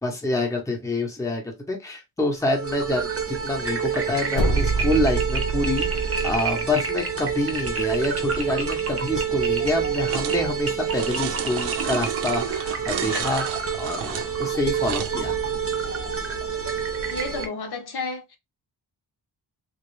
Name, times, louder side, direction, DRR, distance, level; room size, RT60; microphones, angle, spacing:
voice 1, 0.0-15.3, left 1 dB, 10° left, 0.7 m, -27 dB
sound 1, 2.4-17.5, right 6 dB, 35° right, 0.6 m, -28 dB
sound 2, 4.3-6.4, right 3 dB, 85° left, 1.1 m, -25 dB
sound 3, 10.1-10.4 10.9-15.2, right 9 dB, 80° right, 0.5 m, -32 dB
voice 2, 17.1-18.4, left 3 dB, 65° left, 0.8 m, -31 dB
3.0 x 2.3 x 3.1 m
wide cardioid pair, 175°, 42 cm